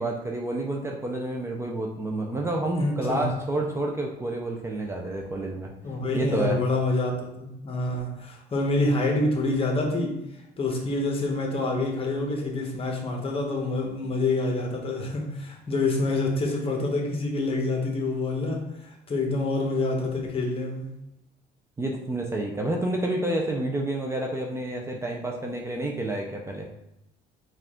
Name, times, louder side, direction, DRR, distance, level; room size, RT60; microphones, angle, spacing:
voice 1, 0.0-5.7 6.1-6.6 21.8-26.7, right 1 dB, 15° right, 0 dB, 0.4 m, -29 dB
voice 2, 2.8-3.3 5.8-10.2 10.6-20.9, left 2 dB, 35° left, 1 dB, 1.0 m, -27 dB
4.6 x 2.4 x 3.6 m, 0.88 s
cardioid pair, 110°, 17 cm